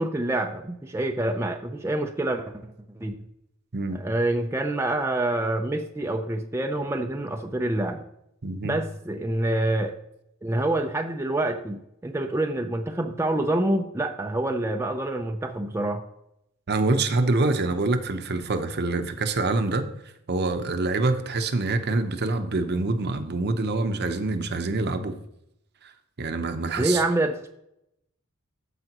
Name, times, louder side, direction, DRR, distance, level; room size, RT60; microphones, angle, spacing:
voice 1, 0.0-3.2 3.9-8.0 8.6-9.9 10.4-16.0 26.8-27.5, right 1 dB, 10° right, 3 dB, 0.5 m, -27 dB
voice 2, 8.4-8.8 16.7-19.9 20.3-25.1 25.8-25.9 26.2-27.0, right 3 dB, 50° right, 8 dB, 0.8 m, -25 dB
14.0 x 4.9 x 2.9 m, 0.78 s
head